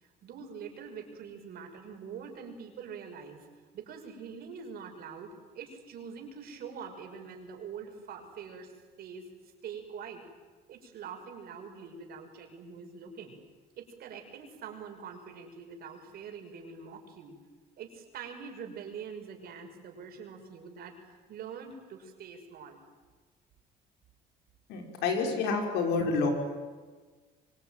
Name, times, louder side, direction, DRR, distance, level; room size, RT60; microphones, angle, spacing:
voice 1, 0.0-3.5 3.7-9.3 9.6-10.2 10.7-13.4 13.8-17.3 17.8-22.8, right 6 dB, 65° right, 3 dB, 6.1 m, -44 dB
voice 2, 24.7-26.3, left 4 dB, 85° left, 3 dB, 5.8 m, -28 dB
25.0 x 24.5 x 9.3 m, 1.4 s
cardioid pair, 110°, 17 cm